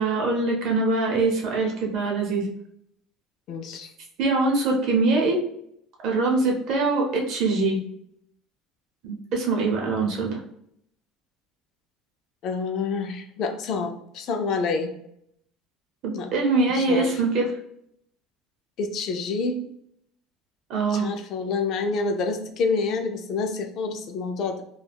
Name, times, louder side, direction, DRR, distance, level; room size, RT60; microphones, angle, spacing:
voice 1, 0.0-2.5 4.2-5.4 6.0-7.8 9.0-10.4 16.0-17.5 20.7-21.1, right 3 dB, 50° right, 0 dB, 0.7 m, -23 dB
voice 2, 3.5-3.9 12.4-14.9 16.1-16.3 16.7-17.1 18.8-19.7 20.9-24.6, left 4 dB, 45° left, 4 dB, 0.4 m, -28 dB
2.3 x 2.2 x 3.3 m, 0.72 s
cardioid pair, 155°, 0 cm